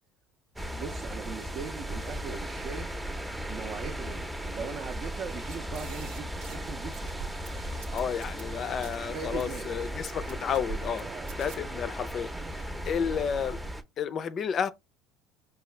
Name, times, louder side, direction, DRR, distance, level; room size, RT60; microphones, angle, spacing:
sound 1, 0.6-13.8, right 1 dB, 10° right, 0.6 m, -37 dB
voice 1, 0.7-2.9 3.5-7.1 9.1-9.7 11.0-11.3 12.4-12.6, right 6 dB, 55° right, 0.5 m, -40 dB
sound 2, 5.3-6.7 6.9-9.0 9.4-9.7 10.1-11.0 11.3-11.6, right 5 dB, 80° right, 0.8 m, -45 dB
voice 2, 7.9-11.1 11.4-12.3 12.9-13.6 14.0-14.7, left 7 dB, 45° left, 0.4 m, -31 dB
4.8 x 2.3 x 3.2 m
supercardioid pair, 85°, 0 cm